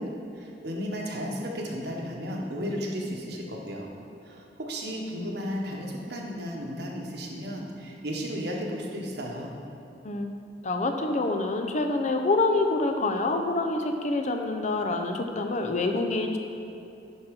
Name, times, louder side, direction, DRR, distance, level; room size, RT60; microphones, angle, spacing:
voice 1, 0.0-3.9 4.2-9.5, equal, 65° right, -1 dB, 1.3 m, -34 dB
voice 2, 10.6-16.4, left 2 dB, 40° left, 4 dB, 0.6 m, -26 dB
11.0 x 4.4 x 5.2 m, 2.7 s
head